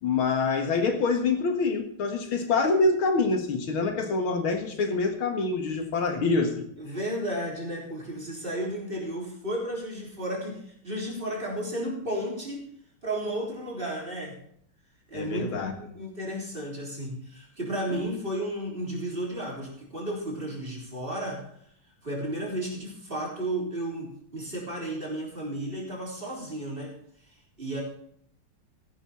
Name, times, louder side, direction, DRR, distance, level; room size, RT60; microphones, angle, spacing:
voice 1, 0.0-6.7 15.1-15.7 17.9-18.0, left 3 dB, 80° left, 5 dB, 2.5 m, -26 dB
voice 2, 6.8-12.7 13.0-14.4 15.1-21.5 22.0-26.9 27.6-27.8, right 1 dB, 25° right, -2 dB, 3.9 m, -33 dB
15.0 x 11.0 x 4.3 m, 0.67 s
omnidirectional pair, 2.3 m